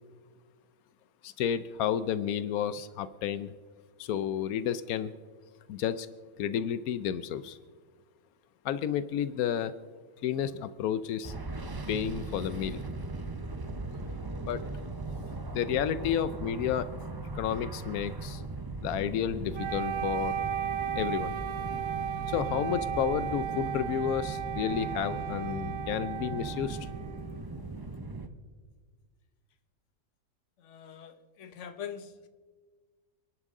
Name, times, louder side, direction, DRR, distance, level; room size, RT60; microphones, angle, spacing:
voice 1, 1.2-3.5 4.0-5.1 5.7-6.1 6.4-7.6 8.6-9.7 10.2-11.3 11.9-12.8 14.4-14.6 15.5-16.9 17.2-18.4 18.8-20.3 20.9-21.3 22.3-26.9, left 9 dB, 90° left, 14 dB, 1.1 m, -31 dB
sound 1, 11.2-28.3, right 3 dB, 25° right, 0.5 m, -39 dB
Wind instrument woodwind instrument, 19.5-27.6, right 9 dB, 70° right, 1.2 m, -35 dB
voice 2, 30.6-32.3, left 8 dB, 60° left, 9 dB, 1.2 m, -43 dB
29.0 x 11.0 x 3.7 m, 1.5 s
omnidirectional pair, 1.5 m